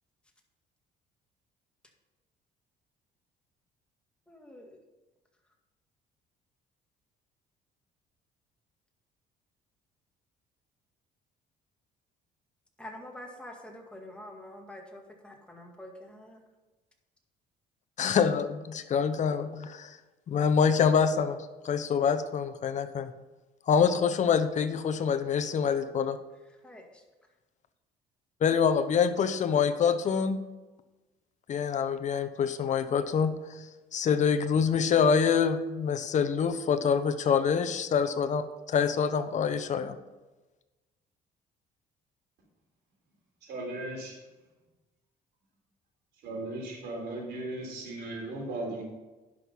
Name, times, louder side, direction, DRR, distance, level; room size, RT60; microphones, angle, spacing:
voice 1, 4.3-4.8 12.8-16.4 26.6-27.0, left 1 dB, 5° left, 0 dB, 2.0 m, -46 dB
voice 2, 18.0-20.0 20.3-21.4 21.6-23.1 23.7-26.2 28.4-30.4 31.5-33.3 33.9-40.0, left 6 dB, 45° left, 9 dB, 0.9 m, -26 dB
voice 3, 43.4-44.1 46.2-48.8, right 2 dB, 75° right, -1 dB, 3.8 m, -37 dB
11.0 x 6.2 x 5.5 m, 1.1 s
cardioid pair, 110°, 17 cm